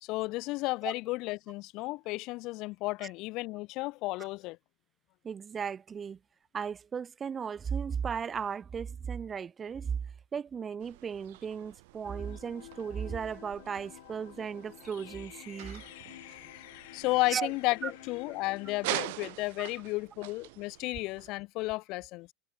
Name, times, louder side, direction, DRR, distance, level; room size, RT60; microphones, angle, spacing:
voice 1, 0.0-4.6 16.9-22.3, left 22 dB, 55° left, 1.1 m, -33 dB
voice 2, 5.2-6.2 6.5-10.0 10.3-15.8 17.3-17.5 17.8-17.9 19.6-19.7, right 7 dB, 25° right, 0.4 m, -36 dB
sound 1, 10.8-21.3, right 22 dB, 75° right, 1.4 m, -44 dB
sound 2, 12.0-18.9, left 21 dB, 75° left, 2.1 m, -50 dB
supercardioid pair, 135°, 0 cm